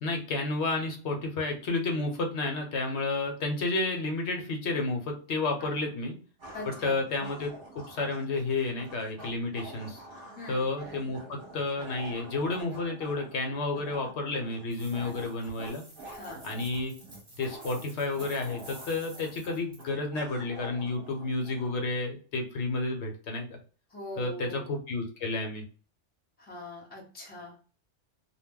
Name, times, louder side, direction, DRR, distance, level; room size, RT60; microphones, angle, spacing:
voice 1, 0.0-6.1 6.8-10.0 10.5-15.8 16.4-16.9 17.4-23.5 24.2-25.6, left 3 dB, 70° left, 3 dB, 1.0 m, -31 dB
sound 1, 5.4-5.5 6.4-21.8, right 2 dB, 55° right, 0.9 m, -47 dB
voice 2, 6.5-7.0 10.4-10.7 16.1-16.5 23.9-24.7 26.4-27.6, left 1 dB, 10° left, -1 dB, 0.7 m, -42 dB
sound 2, 14.7-19.9, right 1 dB, 25° right, 1.0 m, -51 dB
2.3 x 2.1 x 3.5 m, 0.38 s
omnidirectional pair, 1.2 m